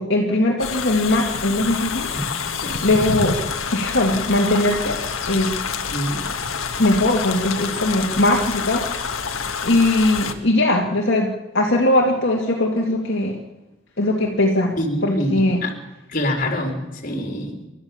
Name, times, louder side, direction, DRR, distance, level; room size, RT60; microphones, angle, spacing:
voice 1, 0.0-2.1 2.8-3.4 3.7-5.0 5.3-5.5 6.8-8.9 9.6-11.3 11.5-13.4 14.0-14.7 15.0-15.6, left 1 dB, 60° left, -2 dB, 2.4 m, -19 dB
sound 1, 0.6-10.3, left 6 dB, 85° left, 1.7 m, -27 dB
voice 2, 5.9-6.3 14.8-15.3 15.6-15.7 16.1-16.7 17.0-17.5, left 1 dB, 40° left, 2 dB, 3.8 m, -25 dB
29.5 x 12.5 x 7.2 m, 1.0 s
head